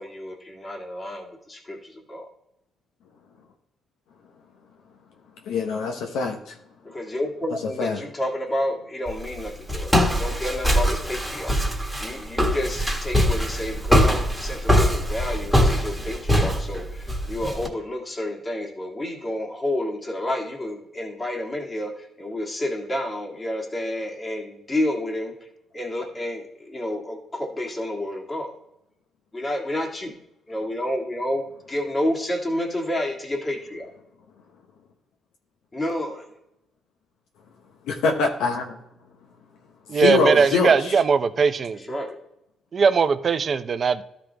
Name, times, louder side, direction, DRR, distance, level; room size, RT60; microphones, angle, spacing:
voice 1, 0.0-2.3 6.8-25.3 25.7-28.5 29.3-30.2 30.5-33.9 35.7-36.3 41.9-42.2, left 1 dB, 25° left, 1.8 m, -30 dB
voice 2, 5.4-6.6 7.8-8.1 37.8-38.8 39.9-40.9, left 4 dB, 90° left, 0.9 m, -24 dB
Walk footsteps, 9.1-17.7, equal, 5° left, 1.6 m, -22 dB
voice 3, 39.9-41.9 42.7-44.0, right 5 dB, 45° right, 0.5 m, -20 dB
13.0 x 5.1 x 3.4 m
cardioid pair, 90°, 0 cm